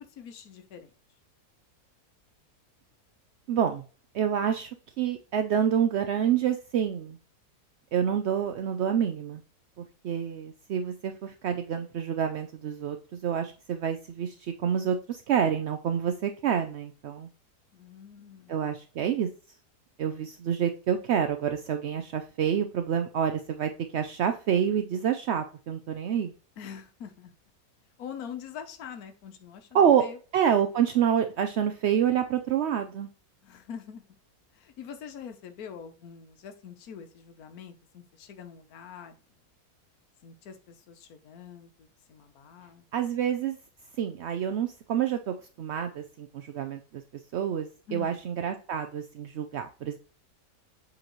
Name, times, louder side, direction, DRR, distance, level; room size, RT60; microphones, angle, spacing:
voice 1, 0.2-0.9 17.7-18.7 26.6-27.3 28.0-30.2 33.4-34.0 34.5-39.2 40.2-42.8 47.9-48.2, left 7 dB, 70° left, 7 dB, 1.3 m, -44 dB
voice 2, 3.5-3.8 4.1-4.7 5.0-7.2 7.9-9.4 10.0-17.3 18.5-19.3 20.0-26.3 29.7-30.0 30.3-33.1 42.9-43.6 44.0-47.0 47.3-50.0, right 8 dB, 70° right, 7 dB, 0.6 m, -27 dB
7.8 x 4.0 x 3.0 m, 0.37 s
omnidirectional pair, 1.7 m